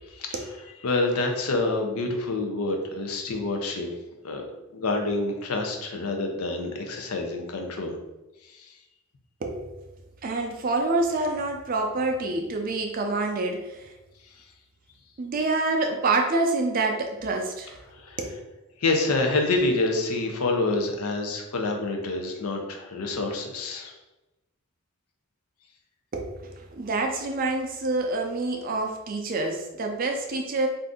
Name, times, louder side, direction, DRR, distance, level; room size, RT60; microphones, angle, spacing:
voice 1, 0.8-3.9 4.2-4.4 4.7-8.0 8.5-8.7 17.9-18.2 18.8-23.9, left 2 dB, 90° left, 3 dB, 0.6 m, -27 dB
voice 2, 9.4-9.7 10.2-13.9 15.2-17.8 18.2-18.3 26.1-30.7, right 3 dB, 40° right, 3 dB, 0.4 m, -27 dB
2.6 x 2.5 x 3.5 m, 1.0 s
head